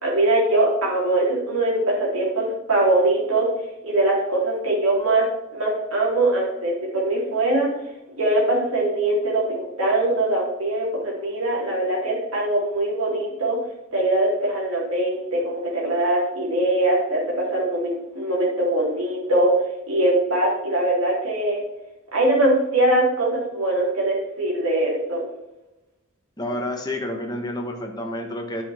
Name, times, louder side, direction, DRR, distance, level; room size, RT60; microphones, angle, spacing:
voice 1, 0.0-3.5 3.8-7.7 8.2-13.6 13.9-19.5 19.9-21.6 22.1-25.2, right 1 dB, 85° right, -3 dB, 3.8 m, -22 dB
voice 2, 26.4-28.6, left 1 dB, 20° left, 2 dB, 1.4 m, -29 dB
10.5 x 7.2 x 3.7 m, 0.94 s
head